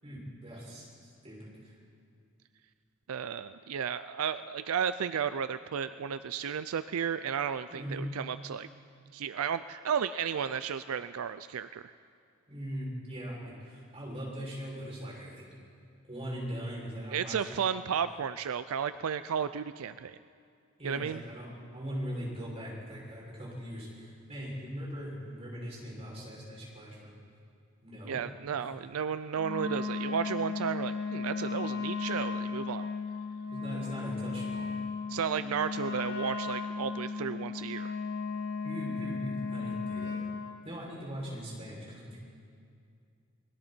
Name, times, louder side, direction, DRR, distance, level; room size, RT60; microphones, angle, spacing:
voice 1, 0.0-1.7 7.7-8.1 12.5-15.4 16.1-17.6 20.8-21.5 21.7-27.2 27.8-28.2 33.5-34.7 38.6-40.2 40.6-42.2, equal, 30° right, -5 dB, 6.7 m, -40 dB
voice 2, 3.1-8.7 9.1-11.9 17.1-20.2 20.8-21.2 28.1-32.8 35.1-37.9, right 7 dB, 80° right, 13 dB, 0.4 m, -33 dB
Wind instrument woodwind instrument, 29.3-40.4, left 4 dB, 55° left, 4.5 m, -35 dB
28.5 x 21.0 x 4.4 m, 2.4 s
head